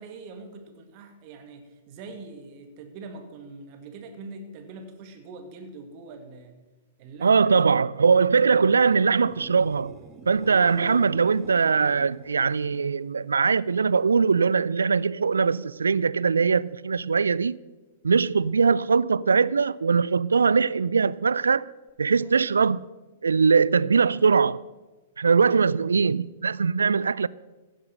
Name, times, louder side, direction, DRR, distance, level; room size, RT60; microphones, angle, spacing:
voice 1, 0.0-6.6 7.0-7.6 22.2-22.3 25.5-25.7, right 3 dB, 40° right, 1.9 m, -43 dB
voice 2, 7.2-10.0 10.3-17.6 18.0-21.7 22.0-22.8 23.2-24.6 25.2-27.3, right 5 dB, 75° right, 0.3 m, -21 dB
sound 1, 8.1-13.9 14.3-14.8 21.9-22.0, right 3 dB, 20° right, 1.3 m, -46 dB
15.5 x 7.5 x 6.4 m
figure-of-eight pair, 105°, 0 cm